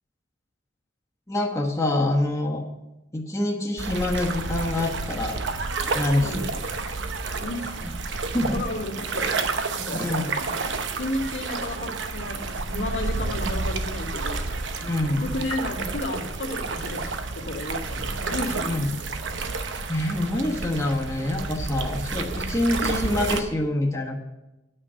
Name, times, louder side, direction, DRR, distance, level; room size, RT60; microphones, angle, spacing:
voice 1, 1.3-2.6 3.1-5.4 5.9-6.3 8.3-8.6 9.9-10.4 14.8-15.3 18.7-18.9 19.9-24.2, left 1 dB, 15° left, -2 dB, 1.3 m, -25 dB
sound 1, 3.8-23.4, right 3 dB, 75° right, 0.8 m, -30 dB
voice 2, 6.2-6.5 7.4-9.5 9.7-10.2 10.9-14.5 15.0-17.0 17.4-18.8, left 1 dB, 85° left, -3 dB, 2.1 m, -33 dB
8.8 x 6.4 x 7.5 m, 0.98 s
head